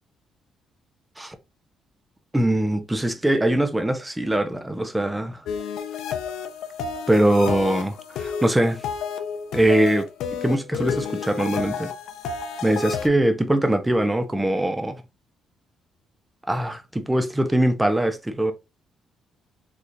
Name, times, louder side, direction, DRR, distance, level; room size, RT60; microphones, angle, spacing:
voice 1, 2.3-5.4 7.1-8.8 9.5-10.1 10.4-11.9 12.6-15.0 16.5-18.5, right 1 dB, 10° right, 0.7 m, -22 dB
sound 1, 5.5-13.1, left 6 dB, 85° left, 0.5 m, -31 dB
3.7 x 2.9 x 2.6 m
cardioid pair, 90°, 0 cm